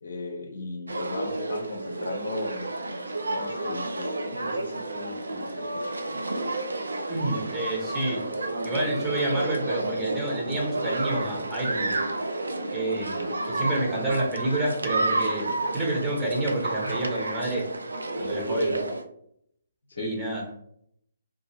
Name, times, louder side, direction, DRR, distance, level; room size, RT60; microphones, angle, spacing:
voice 1, 0.0-6.2 13.2-13.7 19.9-20.2, left 3 dB, 65° left, 4 dB, 0.5 m, -38 dB
sound 1, 0.9-19.0, right 2 dB, 75° right, 0.4 m, -30 dB
voice 2, 7.1-8.2 8.6-11.9 12.7-17.7 18.2-18.8 20.0-20.4, right 1 dB, 15° right, -3 dB, 0.8 m, -29 dB
2.5 x 2.4 x 2.9 m, 0.69 s
figure-of-eight pair, 135°, 0 cm